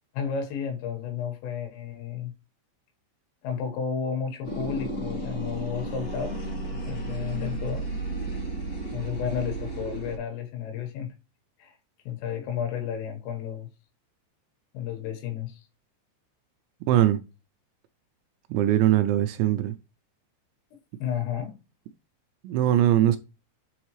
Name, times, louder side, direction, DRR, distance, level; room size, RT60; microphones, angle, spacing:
voice 1, 0.1-2.3 3.4-7.9 8.9-11.1 11.6-11.8 12.1-13.7 14.7-15.6 21.0-21.6, left 8 dB, 90° left, 4.0 m, -32 dB
sound 1, 4.4-10.2, right 2 dB, 65° left, 0.9 m, -33 dB
voice 2, 16.9-17.2 18.5-19.7 22.4-23.2, right 12 dB, 85° right, 2.6 m, -21 dB
8.0 x 3.9 x 3.1 m
omnidirectional pair, 5.6 m